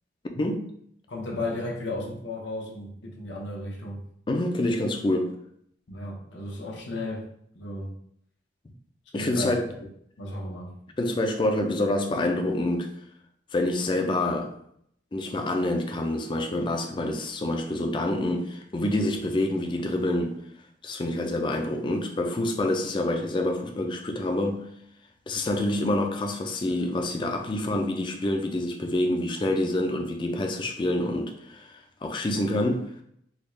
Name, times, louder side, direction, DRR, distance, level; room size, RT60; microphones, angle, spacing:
voice 1, 0.3-0.7 4.3-5.3 8.7-8.8 9.1-9.6 11.0-12.9 13.5-14.5 15.1-20.4 20.8-24.7 25.3-32.9, left 1 dB, 25° left, 4 dB, 0.4 m, -27 dB
voice 2, 1.1-4.0 5.9-7.3 7.5-7.9 9.2-9.6 10.2-10.7, left 2 dB, 90° left, -1 dB, 0.8 m, -34 dB
3.5 x 2.3 x 3.1 m, 0.70 s
head